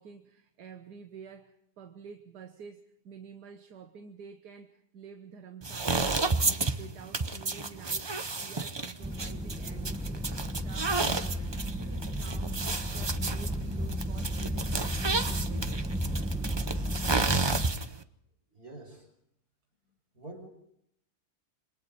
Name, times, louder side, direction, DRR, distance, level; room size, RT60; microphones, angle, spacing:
voice 1, 0.0-11.5 11.8-12.6 12.9-15.9, right 6 dB, 85° right, 6 dB, 1.8 m, -49 dB
sound 1, 5.6-18.0, right 3 dB, 30° right, 0.4 m, -32 dB
sound 2, 9.0-17.7, equal, 5° right, 1.0 m, -33 dB
voice 2, 18.5-19.1 20.1-20.5, right 2 dB, 65° right, 2 dB, 6.1 m, -46 dB
27.5 x 23.0 x 4.3 m, 0.73 s
omnidirectional pair, 1.7 m